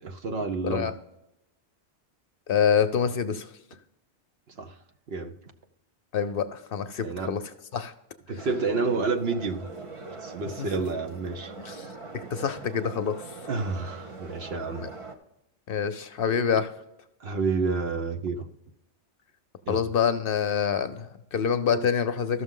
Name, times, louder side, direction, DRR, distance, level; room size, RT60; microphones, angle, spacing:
voice 1, 0.0-0.9 4.6-4.7 5.1-5.3 7.0-7.4 8.3-9.6 10.2-11.5 13.5-14.9 17.2-18.5 19.7-19.8, right 4 dB, 65° right, 6 dB, 1.0 m, -29 dB
voice 2, 2.5-3.5 6.1-7.4 7.7-7.9 10.6-10.7 11.6-11.9 12.1-13.3 14.8-14.9 15.7-16.7 19.7-22.4, left 7 dB, 60° left, 10 dB, 0.7 m, -26 dB
sound 1, 8.4-15.2, right 3 dB, 30° right, 0.9 m, -42 dB
13.5 x 6.3 x 3.7 m, 0.88 s
omnidirectional pair, 1.2 m